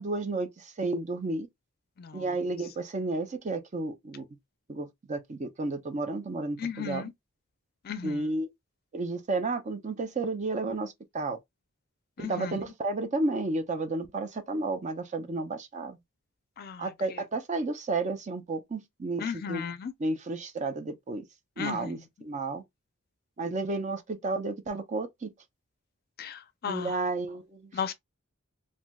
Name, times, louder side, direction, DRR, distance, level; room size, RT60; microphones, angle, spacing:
voice 1, 0.0-1.5 2.1-4.3 4.7-7.1 8.0-8.5 8.9-11.4 12.2-16.0 16.8-19.6 20.0-21.2 21.6-22.6 23.4-25.3 26.7-27.9, right 2 dB, 35° right, 0.5 m, -32 dB
voice 2, 2.0-2.4 6.6-7.1 7.8-8.3 12.2-12.6 16.6-17.2 19.2-19.9 21.6-22.0 26.2-27.0 27.7-27.9, left 6 dB, 45° left, 0.4 m, -36 dB
3.2 x 2.6 x 2.2 m
head